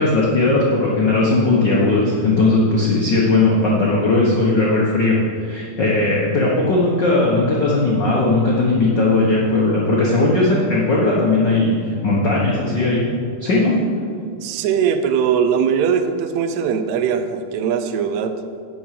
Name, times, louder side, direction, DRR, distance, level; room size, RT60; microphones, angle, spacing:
voice 1, 0.0-13.1 13.4-13.7, left 2 dB, 80° left, -4 dB, 1.0 m, -17 dB
voice 2, 14.4-18.4, right 7 dB, 80° right, 8 dB, 1.6 m, -20 dB
10.0 x 6.3 x 7.6 m, 2.2 s
omnidirectional pair, 4.0 m